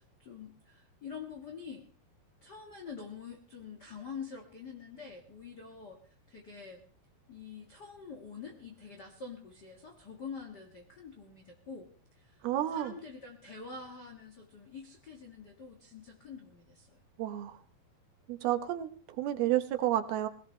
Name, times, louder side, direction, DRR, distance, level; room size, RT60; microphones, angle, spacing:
voice 1, 0.2-1.9 2.4-6.8 7.3-11.9 12.1-17.0, left 5 dB, 40° left, 1 dB, 1.5 m, -46 dB
voice 2, 12.4-12.9 17.2-17.6 18.3-20.3, right 13 dB, 90° right, 9 dB, 3.0 m, -31 dB
21.5 x 17.5 x 3.2 m, 0.42 s
omnidirectional pair, 4.3 m